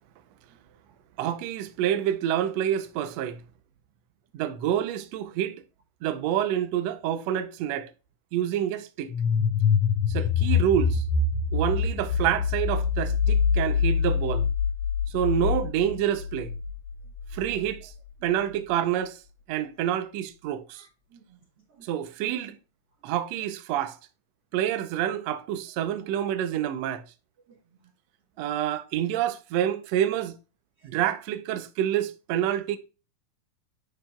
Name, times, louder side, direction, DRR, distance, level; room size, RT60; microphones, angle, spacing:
voice 1, 1.2-3.4 4.3-5.6 6.0-7.9 8.3-9.1 10.1-11.0 11.5-14.5 15.1-16.5 17.3-17.9 18.2-19.2 19.5-20.8 21.8-22.6 23.0-24.0 24.5-27.0 28.4-30.4 30.8-32.8, right 11 dB, 80° right, 1.6 m, -27 dB
sound 1, 9.1-17.8, left 6 dB, 70° left, 1.7 m, -25 dB
voice 2, 20.7-21.4 21.7-21.9 22.5-22.6 27.5-27.9 30.8-31.0, right 4 dB, 60° right, 1.7 m, -57 dB
10.5 x 4.9 x 2.3 m
omnidirectional pair, 3.8 m